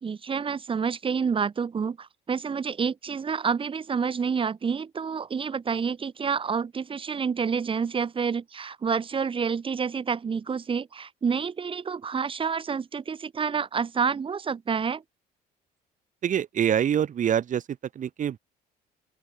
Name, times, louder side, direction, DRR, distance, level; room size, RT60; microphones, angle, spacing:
voice 1, 0.0-15.0, right 6 dB, 30° right, 1.7 m, -28 dB
voice 2, 16.2-17.6 17.9-18.4, right 9 dB, 50° right, 2.9 m, -25 dB
open air
cardioid pair, 110°, 17 cm